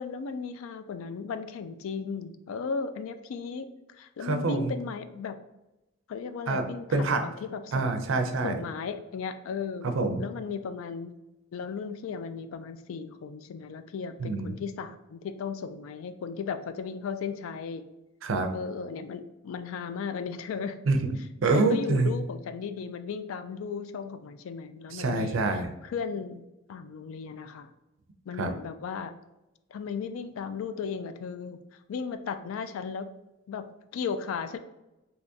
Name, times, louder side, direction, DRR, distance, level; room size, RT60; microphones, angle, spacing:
voice 1, 0.0-5.4 6.1-7.9 8.4-9.9 10.2-11.1 11.5-17.8 18.5-20.8 21.5-27.7 28.3-29.1 29.7-31.6 31.9-33.1 33.5-33.6 33.9-34.6, left 5 dB, 75° left, 10 dB, 0.3 m, -36 dB
voice 2, 4.2-4.7 6.5-6.6 6.9-7.2 7.7-8.6 9.8-10.2 14.2-14.6 18.2-18.5 20.9-22.1 24.9-25.7 28.4-28.5, right 3 dB, 65° right, 7 dB, 0.4 m, -26 dB
3.5 x 2.9 x 2.6 m, 0.96 s
head